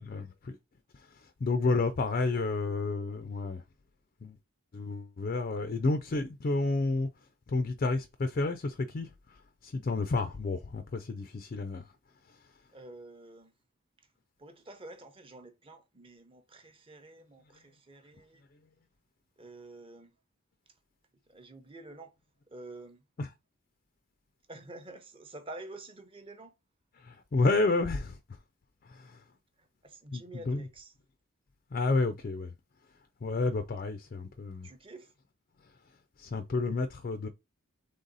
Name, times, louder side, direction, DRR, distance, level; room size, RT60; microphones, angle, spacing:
voice 1, 0.0-0.6 0.9-3.6 4.2-4.4 4.7-7.1 7.5-11.9 12.3-12.5 23.2-23.3 27.0-28.2 28.8-29.2 30.1-30.7 31.7-32.5 33.2-34.7 35.6-35.7 36.2-37.3, left 3 dB, 40° left, 0.4 m, -31 dB
voice 2, 2.2-2.8 12.7-13.5 14.0-14.1 14.4-18.4 19.4-20.1 21.3-22.2 22.5-23.0 24.5-26.5 29.6-30.9 34.6-35.1, right 2 dB, 25° right, 0.7 m, -49 dB
3.9 x 3.3 x 3.9 m
head